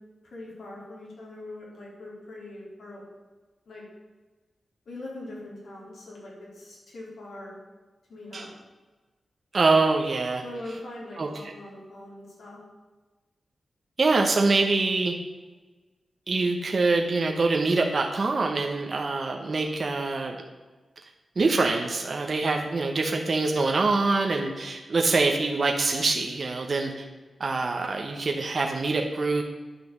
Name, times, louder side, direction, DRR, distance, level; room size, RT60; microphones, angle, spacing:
voice 1, 0.2-3.0 3.7-3.8 4.9-7.5 8.1-8.5 10.4-12.6, left 1 dB, 80° left, -4 dB, 3.9 m, -42 dB
voice 2, 9.5-10.4 11.2-11.3 14.0-15.1 16.3-20.3 21.4-27.0 27.4-29.4, right 3 dB, 40° right, 2 dB, 1.0 m, -24 dB
10.0 x 5.9 x 7.2 m, 1.2 s
wide cardioid pair, 170°, 0 cm